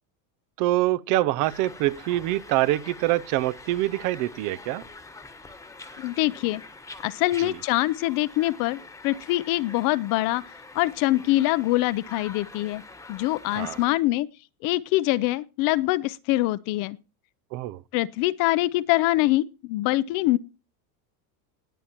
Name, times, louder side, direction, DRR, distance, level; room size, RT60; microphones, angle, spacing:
voice 1, 0.6-4.8 7.4-7.5 13.5-13.8 17.5-17.8, right 16 dB, 45° right, 0.6 m, -25 dB
sound 1, 1.4-13.9, left 3 dB, 5° left, 1.3 m, -45 dB
voice 2, 6.0-6.6 7.0-10.4 10.7-12.8 13.1-14.3 14.6-17.0 17.9-20.4, left 17 dB, 45° left, 0.6 m, -24 dB
19.5 x 8.7 x 3.0 m
supercardioid pair, 150°, 45 cm